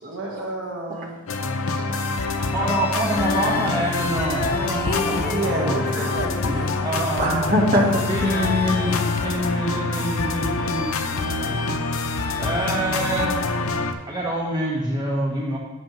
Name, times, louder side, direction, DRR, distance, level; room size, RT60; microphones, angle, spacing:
voice 1, 0.0-1.2 4.9-6.7 7.8-8.3, right 2 dB, 60° right, -1 dB, 1.5 m, -30 dB
sound 1, 1.3-13.9, left 3 dB, 85° left, 0.7 m, -26 dB
voice 2, 1.4-2.5 5.9-6.2 6.5-6.6 7.2-8.0, equal, 40° right, -1 dB, 1.7 m, -24 dB
voice 3, 2.5-5.8 6.4-6.5 6.8-7.6 8.1-11.6 12.3-13.5 14.1-15.6, right 1 dB, 20° right, -4 dB, 1.4 m, -26 dB
Female singing, 3.0-10.1 10.7-10.8, left 4 dB, 40° left, 0.4 m, -32 dB
10.5 x 7.5 x 3.1 m, 1.1 s
head